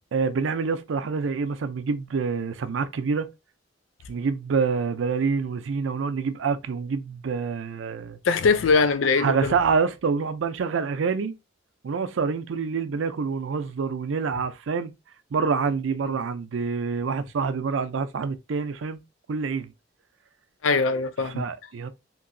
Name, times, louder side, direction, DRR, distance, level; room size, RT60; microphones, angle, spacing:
voice 1, 0.1-3.3 4.1-8.2 9.2-11.3 11.8-14.9 15.3-19.0 19.3-19.7 21.2-21.9, right 5 dB, 80° right, 0.4 m, -26 dB
voice 2, 8.2-9.5 20.6-21.5, left 4 dB, 85° left, 0.4 m, -21 dB
2.9 x 2.7 x 2.5 m
head